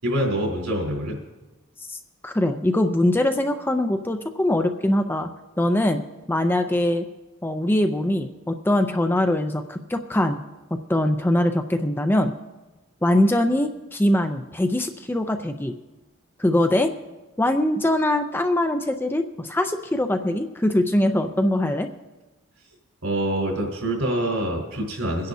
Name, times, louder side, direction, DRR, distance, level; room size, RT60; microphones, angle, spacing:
voice 1, 0.0-1.2 23.0-25.3, right 1 dB, 80° right, -1 dB, 4.2 m, -25 dB
voice 2, 2.2-5.3 5.6-6.0 6.3-7.1 7.4-10.4 10.9-12.3 13.0-15.8 16.4-16.9 17.4-21.9, left 1 dB, 10° left, 7 dB, 0.4 m, -22 dB
23.5 x 10.5 x 2.7 m, 1.1 s
head